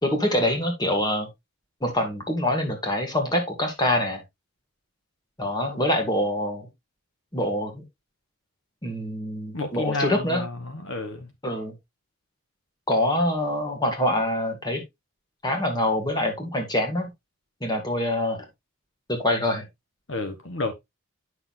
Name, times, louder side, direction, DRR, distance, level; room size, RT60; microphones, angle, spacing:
voice 1, 0.0-1.3 1.8-4.2 5.4-6.7 7.3-7.8 8.8-10.4 11.4-11.7 12.9-14.8 15.4-17.1 17.6-18.4 19.1-19.6, left 1 dB, 20° left, 1.9 m, -25 dB
voice 2, 9.5-11.3 20.1-20.7, left 3 dB, 60° left, 1.2 m, -30 dB
9.5 x 6.1 x 2.5 m
head